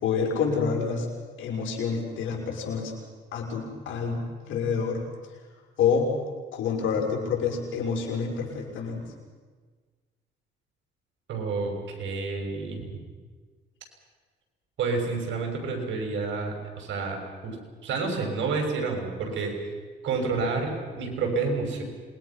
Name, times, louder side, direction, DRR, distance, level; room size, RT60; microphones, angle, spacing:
voice 1, 0.0-1.1 1.4-2.9 3.3-5.0 5.8-6.1 6.5-9.1, left 6 dB, 80° left, -1 dB, 5.8 m, -27 dB
voice 2, 11.3-13.0 14.8-17.5 17.8-19.7 20.0-21.8, right 4 dB, 70° right, 2 dB, 6.3 m, -29 dB
27.0 x 21.5 x 5.9 m, 1.5 s
cardioid pair, 90°, 20 cm